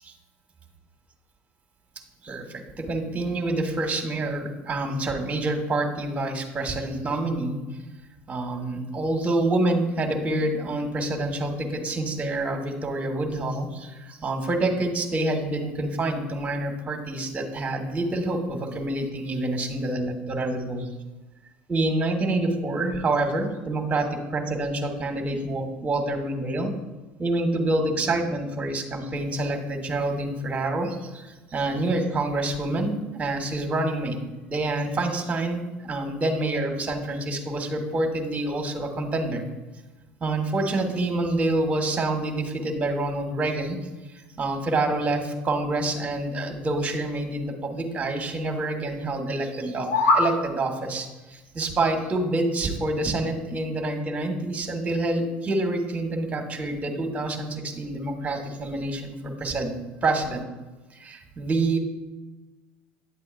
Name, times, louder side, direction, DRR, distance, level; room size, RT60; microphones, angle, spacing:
voice 1, 2.2-7.6 8.3-20.9 21.7-26.7 27.2-34.2 34.5-39.4 40.2-43.8 44.4-59.7 60.0-60.4 60.9-61.8, right 2 dB, 25° right, 4 dB, 1.6 m, -27 dB
sound 1, 49.6-50.3, left 2 dB, 85° left, 2.0 m, -21 dB
9.6 x 7.5 x 2.6 m, 1.2 s
hypercardioid pair, 85°, 5 cm